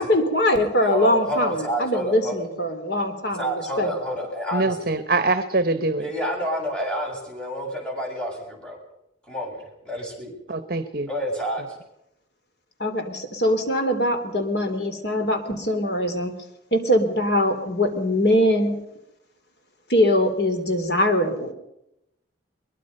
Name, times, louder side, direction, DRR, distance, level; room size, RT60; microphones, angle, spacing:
voice 1, 0.0-3.9 12.8-16.3 16.7-18.8 19.9-21.5, left 1 dB, 65° left, 6 dB, 3.6 m, -22 dB
voice 2, 0.8-2.4 3.3-5.0 6.0-8.8 9.3-10.3 11.1-11.6, equal, 5° left, -1 dB, 7.3 m, -29 dB
voice 3, 4.5-6.0 10.5-11.1, right 3 dB, 55° right, 11 dB, 0.9 m, -23 dB
23.0 x 22.5 x 5.5 m, 0.84 s
head